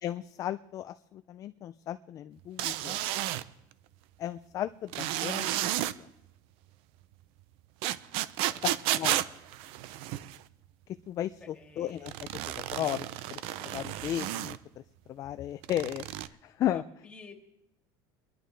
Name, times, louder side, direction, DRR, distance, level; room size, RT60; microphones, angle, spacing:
voice 1, 0.0-3.0 4.2-6.1 8.6-9.2 11.1-12.1 12.5-13.4 13.6-14.8 15.1-16.8, left 12 dB, 30° left, 11 dB, 0.4 m, -35 dB
sound 1, 2.6-3.4 4.9-5.9 7.8-10.4 12.1-14.6 15.6-16.3, right 14 dB, 60° right, 0.6 m, -32 dB
voice 2, 8.9-9.6 11.4-12.1 16.6-17.3, left 3 dB, 10° left, 1 dB, 2.2 m, -52 dB
24.0 x 11.5 x 3.3 m, 0.85 s
cardioid pair, 155°, 11 cm